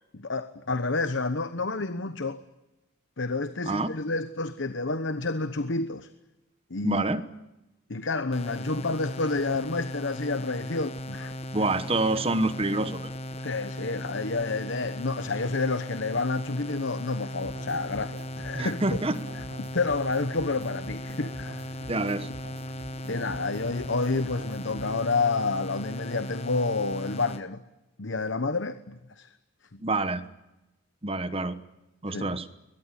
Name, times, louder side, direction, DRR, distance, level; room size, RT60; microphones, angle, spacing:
voice 1, 0.1-2.4 3.2-6.1 6.7-7.0 7.9-11.4 13.4-19.0 19.6-21.7 23.1-27.6 28.0-29.3 29.7-29.8 32.1-32.4, left 3 dB, 65° left, 1.0 m, -29 dB
voice 2, 6.8-7.2 11.5-13.1 18.5-19.2 21.9-22.3 29.8-30.2 31.0-31.6 32.0-32.5, right 2 dB, 30° right, 1.1 m, -27 dB
sound 1, 8.3-27.4, equal, 30° left, 1.2 m, -37 dB
sound 2, 17.4-25.2, right 1 dB, 70° right, 4.1 m, -46 dB
23.0 x 21.0 x 9.8 m
head